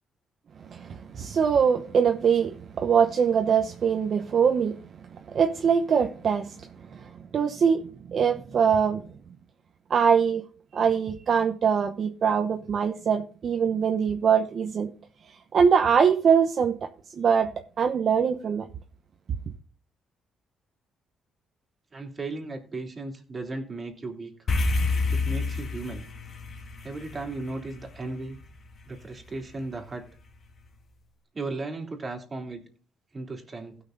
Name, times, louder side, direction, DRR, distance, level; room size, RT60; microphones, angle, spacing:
voice 1, 0.7-4.8 5.3-6.6 6.9-7.8 8.1-9.1 9.9-10.4 10.7-14.9 15.5-16.7 17.1-17.5 17.8-18.7, right 7 dB, 55° right, 0.9 m, -23 dB
voice 2, 21.9-24.3 25.1-26.1 26.8-28.4 28.8-30.1 31.3-32.6 33.1-33.8, right 3 dB, 30° right, 3.1 m, -36 dB
sound 1, 24.5-29.0, left 3 dB, 50° left, 2.1 m, -29 dB
16.5 x 6.3 x 3.9 m
cardioid pair, 90°, 0 cm